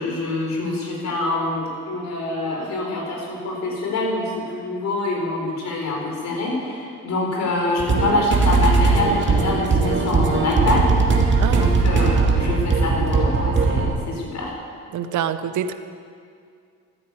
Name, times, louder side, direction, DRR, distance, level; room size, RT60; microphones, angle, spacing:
voice 1, 0.0-10.9 11.2-14.5, left 2 dB, 65° left, -1 dB, 4.4 m, -25 dB
sound 1, 7.8-13.9, right 4 dB, 40° right, 2.2 m, -19 dB
voice 2, 11.4-11.8 14.9-15.7, right 9 dB, 75° right, 11 dB, 0.9 m, -26 dB
13.0 x 10.0 x 8.4 m, 2.3 s
cardioid pair, 90°, 30 cm